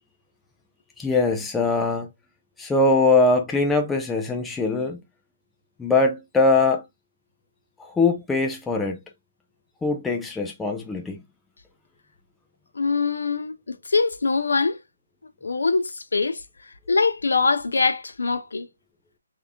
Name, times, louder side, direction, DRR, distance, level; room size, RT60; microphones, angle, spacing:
voice 1, 1.0-2.1 2.6-5.0 5.8-6.8 7.8-9.0 9.8-11.2, left 3 dB, 5° left, 0.4 m, -22 dB
voice 2, 12.7-14.8 15.4-18.7, left 4 dB, 85° left, 1.0 m, -23 dB
3.5 x 3.4 x 3.5 m
hypercardioid pair, 175°, 0 cm